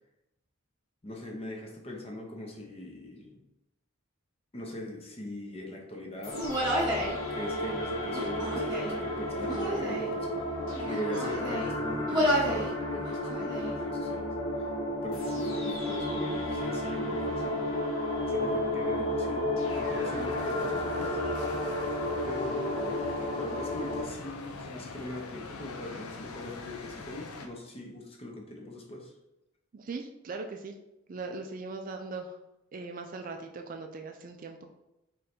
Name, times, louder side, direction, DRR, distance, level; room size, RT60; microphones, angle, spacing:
voice 1, 1.0-3.4 4.5-6.4 7.0-10.5 10.8-14.7 15.0-17.7 18.3-21.2 22.3-29.1, left 1 dB, 25° left, 1 dB, 0.7 m, -41 dB
sound 1, 6.2-24.0, left 1 dB, 65° left, 1.0 m, -32 dB
Human voice, 6.3-7.1 8.1-9.0 9.4-10.1 10.7-11.7 12.1-12.7 13.0-13.7, equal, 20° right, 1.1 m, -30 dB
sound 2, 19.7-27.5, left 3 dB, 85° left, 0.6 m, -43 dB
voice 2, 29.7-30.7 31.1-32.4 32.7-34.7, right 3 dB, 40° right, 4 dB, 0.3 m, -39 dB
3.7 x 3.2 x 4.3 m, 0.91 s
head